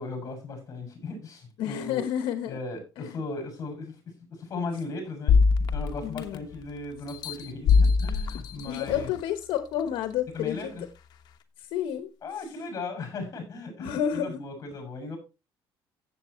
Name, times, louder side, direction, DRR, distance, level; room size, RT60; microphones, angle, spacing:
voice 1, 0.0-2.0 2.5-9.1 10.3-10.9 12.2-15.2, left 3 dB, 35° left, 4 dB, 6.6 m, -37 dB
voice 2, 1.6-2.6 3.0-3.1 6.0-6.4 8.7-10.7 11.6-12.1 13.8-14.4, left 10 dB, 80° left, 9 dB, 1.1 m, -30 dB
sound 1, 5.3-6.6 7.1-9.2 9.8-9.9, left 5 dB, 55° left, 1.2 m, -23 dB
15.0 x 8.0 x 3.1 m, 0.28 s
cardioid pair, 150°, 9 cm